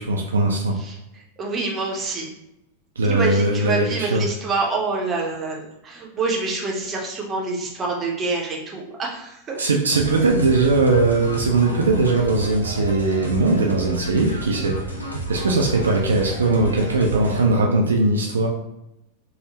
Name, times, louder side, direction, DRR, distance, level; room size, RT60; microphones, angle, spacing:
voice 1, 0.0-0.8 3.0-4.3 9.6-18.5, right 3 dB, 70° right, 1 dB, 0.4 m, -20 dB
voice 2, 0.7-2.3 3.0-9.6 17.1-17.4, right 3 dB, 25° right, -1 dB, 0.7 m, -27 dB
sound 1, 9.9-17.5, right 2 dB, 85° left, 0.6 m, -31 dB
3.4 x 2.0 x 2.8 m, 0.87 s
figure-of-eight pair, 90°, 0 cm